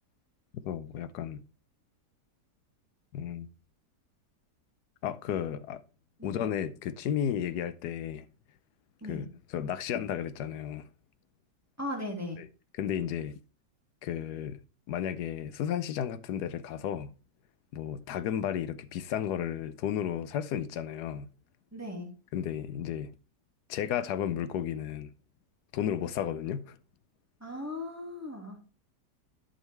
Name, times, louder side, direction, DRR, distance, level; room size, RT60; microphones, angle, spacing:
voice 1, 0.6-1.4 3.1-3.5 5.0-5.8 6.2-8.2 9.1-10.8 12.4-12.5 12.7-13.4 14.0-14.6 14.9-17.1 17.7-21.3 22.3-23.1 23.7-25.1 25.7-26.8, left 9 dB, 70° left, 1.2 m, -33 dB
voice 2, 11.8-12.4 21.7-22.1 27.4-28.6, left 1 dB, 10° right, 2.1 m, -37 dB
11.5 x 5.4 x 3.3 m
omnidirectional pair, 1.9 m